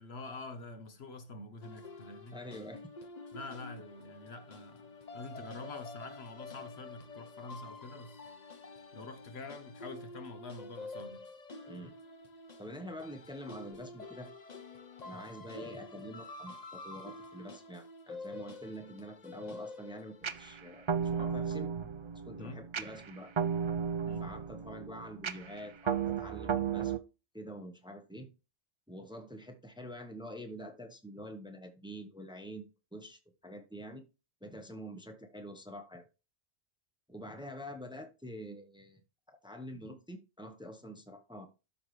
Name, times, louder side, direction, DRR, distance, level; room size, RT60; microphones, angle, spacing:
voice 1, 0.0-2.4 3.3-8.3 8.9-11.2 22.4-22.6 24.1-24.3, left 3 dB, 65° left, 1.3 m, -46 dB
sound 1, 1.6-20.4, left 3 dB, 40° left, 0.9 m, -48 dB
voice 2, 2.3-2.9 11.7-11.9 12.6-14.3 15.0-21.7 22.2-23.3 24.0-26.9 27.3-28.3 28.9-34.0 34.4-36.0 37.1-39.0 39.3-41.5, equal, 5° right, 1.0 m, -46 dB
sound 2, 20.2-27.0, right 7 dB, 45° right, 0.4 m, -34 dB
12.5 x 5.9 x 3.2 m
omnidirectional pair, 1.2 m